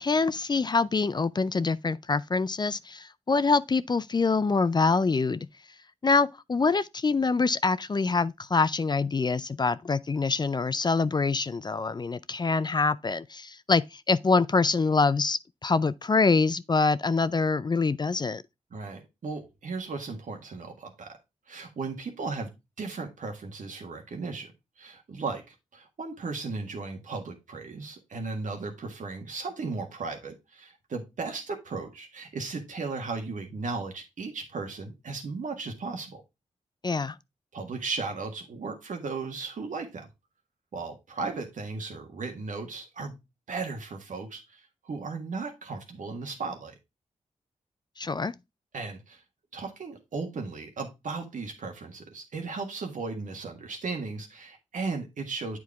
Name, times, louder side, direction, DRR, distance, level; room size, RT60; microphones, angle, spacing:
voice 1, 0.0-5.5 6.0-18.4 36.8-37.2 48.0-48.3, left 4 dB, 35° left, 0.4 m, -25 dB
voice 2, 18.7-21.2 21.5-22.5 22.8-24.5 24.8-36.2 37.5-40.1 40.7-43.2 43.5-46.8 48.7-49.2 49.5-55.6, right 4 dB, 75° right, 1.6 m, -36 dB
8.2 x 4.7 x 3.5 m
cardioid pair, 50°, 13 cm